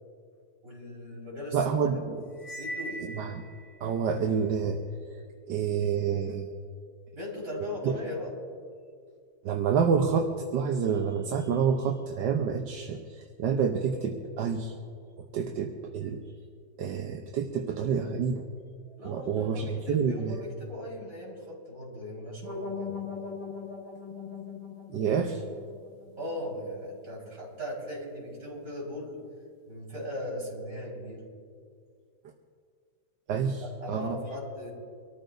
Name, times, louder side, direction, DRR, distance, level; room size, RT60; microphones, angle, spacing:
voice 1, 0.6-2.2 2.6-3.1 7.1-8.3 19.0-23.0 26.2-29.2 29.7-31.2 33.6-34.7, left 1 dB, 50° right, -4 dB, 5.1 m, -38 dB
voice 2, 1.5-2.2 3.2-3.5 3.8-4.8 5.5-6.5 7.8-7.9 9.4-14.7 15.3-16.2 16.8-18.4 19.0-20.4 24.9-25.4 33.3-34.2, right 6 dB, 75° right, 3 dB, 1.5 m, -28 dB
Cymbal, 2.4-3.8, right 1 dB, 70° left, 1.6 m, -39 dB
sound 1, 22.4-27.3, left 5 dB, 15° left, 2.6 m, -41 dB
25.0 x 14.0 x 2.6 m, 2.2 s
omnidirectional pair, 1.9 m